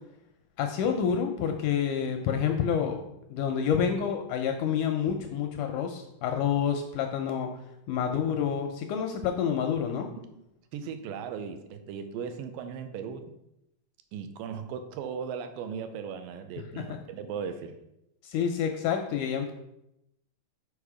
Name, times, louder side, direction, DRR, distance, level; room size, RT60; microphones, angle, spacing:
voice 1, 0.6-3.0 3.3-7.5 7.9-10.1 16.8-17.0 18.2-19.5, left 7 dB, 80° left, 5 dB, 1.8 m, -28 dB
voice 2, 10.7-13.3 14.1-17.7, right 7 dB, 80° right, 8 dB, 2.3 m, -37 dB
6.4 x 5.1 x 4.8 m, 0.84 s
omnidirectional pair, 4.1 m